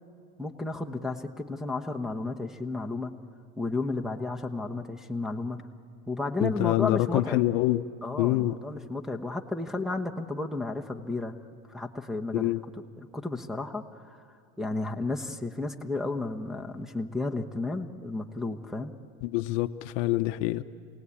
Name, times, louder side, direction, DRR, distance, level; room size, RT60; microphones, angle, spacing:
voice 1, 0.4-3.1 3.6-5.6 6.1-7.4 8.0-11.3 11.7-12.5 13.0-14.2 14.6-18.9, left 2 dB, ahead, 0 dB, 1.1 m, -32 dB
voice 2, 6.4-7.8 8.2-8.6 12.3-12.6 19.2-20.6, left 17 dB, 65° left, 12 dB, 0.8 m, -26 dB
27.5 x 18.0 x 8.6 m, 2.3 s
supercardioid pair, 115°, 41 cm